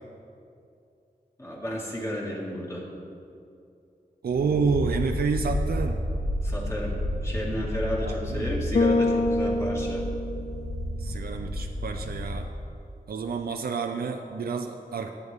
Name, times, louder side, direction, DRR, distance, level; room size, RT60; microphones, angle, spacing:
voice 1, 1.4-2.9 6.4-6.9 7.2-10.0, equal, 20° left, -3 dB, 2.3 m, -32 dB
voice 2, 4.2-6.0 8.0-8.5 11.0-12.5 13.1-15.1, right 5 dB, 80° right, 4 dB, 0.6 m, -29 dB
sound 1, 4.3-12.7, left 1 dB, 65° left, 1.2 m, -31 dB
Bass guitar, 8.7-11.1, left 2 dB, 45° left, 0.4 m, -26 dB
14.5 x 9.4 x 3.6 m, 2.6 s
wide cardioid pair, 90°, 15 cm